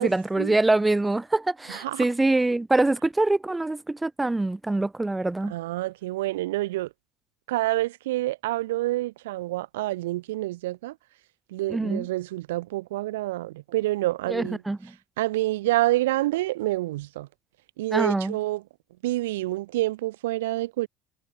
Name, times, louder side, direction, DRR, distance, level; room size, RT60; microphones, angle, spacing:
voice 1, 0.0-5.5 11.7-12.1 14.3-14.9 17.9-18.4, right 2 dB, 10° right, 1.3 m, -24 dB
voice 2, 1.7-2.1 5.5-6.9 7.5-10.9 11.5-14.6 15.2-17.3 17.8-18.6 19.0-20.9, right 17 dB, 85° right, 1.6 m, -27 dB
supercardioid pair, 85°, 0 cm